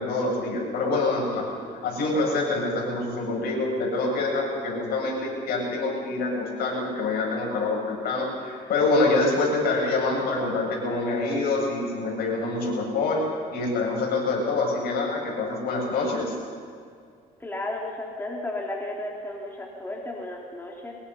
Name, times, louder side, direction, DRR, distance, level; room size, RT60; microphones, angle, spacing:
voice 1, 0.0-1.4 1.8-13.2 13.5-16.3, left 3 dB, 65° left, -2 dB, 7.8 m, -26 dB
voice 2, 17.4-20.9, left 1 dB, 15° left, -2 dB, 3.3 m, -33 dB
23.5 x 21.0 x 5.7 m, 2.2 s
cardioid pair, 110°, 17 cm